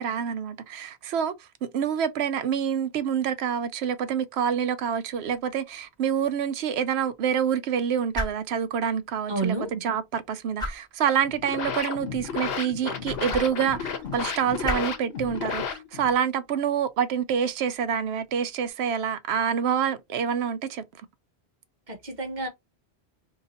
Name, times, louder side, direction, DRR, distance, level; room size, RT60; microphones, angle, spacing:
voice 1, 0.0-1.3 1.6-20.8, right 8 dB, 80° right, 0.8 m, -27 dB
sound 1, 5.1-18.7, equal, 5° left, 1.3 m, -41 dB
voice 2, 9.3-9.7 21.9-22.5, right 3 dB, 45° right, 1.2 m, -29 dB
sound 2, 11.2-16.2, left 6 dB, 70° left, 1.0 m, -33 dB
2.9 x 2.6 x 4.0 m
omnidirectional pair, 1.1 m